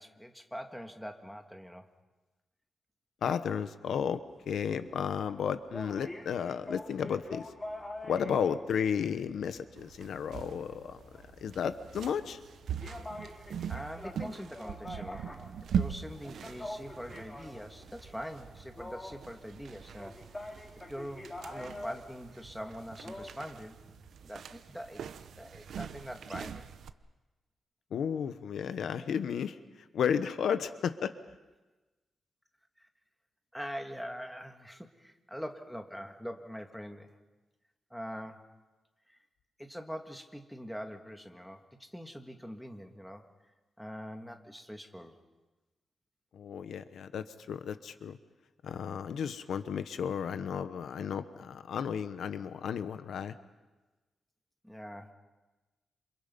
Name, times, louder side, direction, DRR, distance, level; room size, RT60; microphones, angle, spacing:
voice 1, 0.0-1.9 13.4-15.4 15.7-20.5 20.9-23.8 24.2-26.6 32.8-32.9 33.5-37.2 37.9-38.5 39.1-39.2 39.6-43.3 43.8-45.1 54.6-55.1, equal, ahead, 4 dB, 1.7 m, -43 dB
voice 2, 3.2-4.2 4.5-7.5 8.1-11.0 11.4-12.4 27.9-29.6 29.9-31.1 46.3-48.2 48.6-53.3, left 7 dB, 75° left, 11 dB, 1.1 m, -33 dB
sound 1, 4.3-23.3, left 1 dB, 15° left, 2.5 m, -46 dB
sound 2, 9.8-26.9, right 8 dB, 75° right, 0.9 m, -41 dB
sound 3, 15.9-26.6, right 3 dB, 55° right, 6.4 m, -61 dB
28.0 x 28.0 x 5.4 m, 1.2 s
wide cardioid pair, 155°, 0 cm